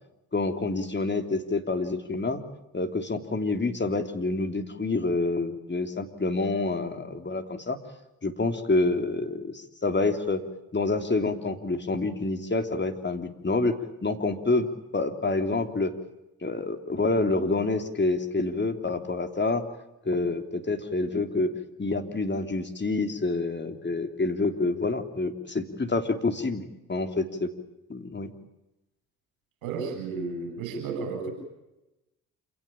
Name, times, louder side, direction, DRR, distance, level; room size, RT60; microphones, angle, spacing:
voice 1, 0.3-2.4 2.7-7.8 8.2-10.4 10.7-15.9 16.4-19.7 20.1-21.5 21.8-27.5 27.9-28.3, left 3 dB, 25° left, 6 dB, 3.4 m, -27 dB
voice 2, 29.6-31.3, right 4 dB, 80° right, 5 dB, 7.6 m, -32 dB
27.5 x 18.0 x 8.9 m, 0.95 s
hypercardioid pair, 45°, 40 cm